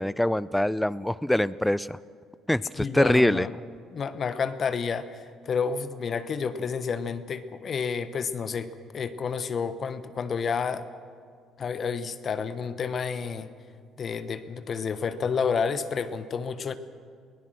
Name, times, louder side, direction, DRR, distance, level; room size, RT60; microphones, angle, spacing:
voice 1, 0.0-2.0 2.5-3.5, left 1 dB, 5° left, 19 dB, 0.5 m, -24 dB
voice 2, 2.8-3.5 3.9-10.9 11.6-13.5 14.0-16.7, left 6 dB, 50° left, 12 dB, 1.1 m, -30 dB
22.5 x 18.0 x 6.4 m, 2.2 s
hypercardioid pair, 55°, 0 cm